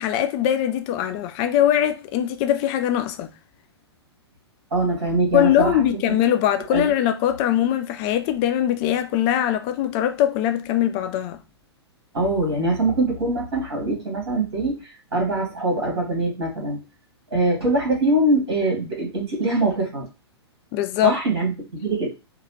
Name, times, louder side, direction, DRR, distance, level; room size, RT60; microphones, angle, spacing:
voice 1, 0.0-3.3 5.3-11.4 20.7-21.2, left 11 dB, 25° left, 0.3 m, -21 dB
voice 2, 4.7-5.8 6.7-6.9 12.1-14.8 15.1-16.8 17.3-20.1 21.0-22.1, right 2 dB, 60° right, 2.2 m, -23 dB
3.9 x 2.5 x 3.0 m
figure-of-eight pair, 110°, 14 cm